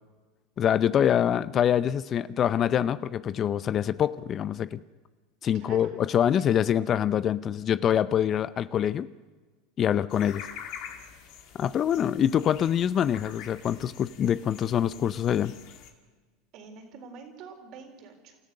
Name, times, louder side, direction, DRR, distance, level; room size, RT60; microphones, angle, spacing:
voice 1, 0.6-4.8 5.4-9.1 9.8-10.4 11.6-15.5, left 9 dB, 40° left, 17 dB, 0.6 m, -25 dB
voice 2, 5.5-5.9 6.4-6.5 16.5-18.4, right 5 dB, 55° right, 4 dB, 4.0 m, -46 dB
sound 1, 10.1-15.9, left 8 dB, 60° left, 2.4 m, -45 dB
28.5 x 14.0 x 6.6 m, 1.4 s
hypercardioid pair, 90°, 0 cm